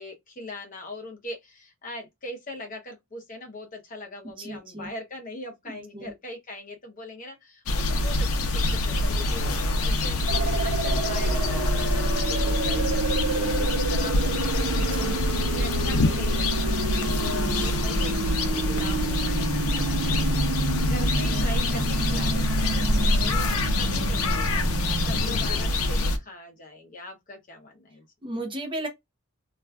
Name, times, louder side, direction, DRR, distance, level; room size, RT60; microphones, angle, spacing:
voice 1, 0.0-28.0, left 1 dB, 35° left, 0.7 m, -41 dB
voice 2, 4.2-4.9 5.7-6.1 14.6-15.2 21.3-21.5 24.9-25.6 28.2-28.9, right 1 dB, 20° right, 0.6 m, -36 dB
sound 1, 7.7-26.2, left 2 dB, 75° left, 0.6 m, -25 dB
sound 2, 10.3-25.2, right 3 dB, 75° right, 0.6 m, -30 dB
2.4 x 2.2 x 3.3 m
head